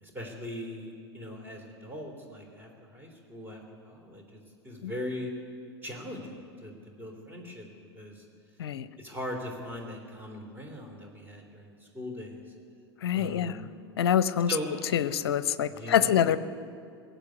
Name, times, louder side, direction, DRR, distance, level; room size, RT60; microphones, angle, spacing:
voice 1, 0.0-5.3 5.8-7.7 7.9-8.2 9.0-12.4 13.1-13.6 14.5-14.7 15.7-16.3, left 1 dB, 15° right, 2 dB, 3.3 m, -40 dB
voice 2, 13.0-13.6 14.0-14.6 14.9-16.4, left 9 dB, 65° left, 15 dB, 0.6 m, -25 dB
19.0 x 8.1 x 9.4 m, 2.3 s
figure-of-eight pair, 85°, 14 cm